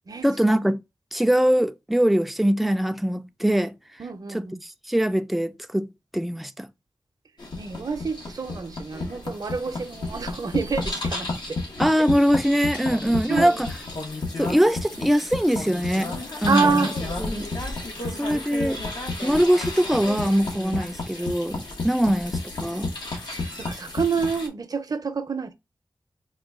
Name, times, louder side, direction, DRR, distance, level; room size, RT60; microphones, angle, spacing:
voice 1, 0.2-0.8 1.1-3.8 4.3-5.9 6.1-6.7 11.8-13.7 14.4-16.9 17.2-17.5 18.2-18.8 19.2-22.9, equal, ahead, 0.3 m, -22 dB
voice 2, 4.0-4.6 7.6-11.6 13.3-13.6 16.5-16.9 18.0-18.3 23.4-25.5, right 5 dB, 60° right, 0.6 m, -27 dB
sound 1, 7.4-24.5, left 2 dB, 85° left, 1.1 m, -32 dB
3.9 x 2.2 x 3.6 m
wide cardioid pair, 65°, 7 cm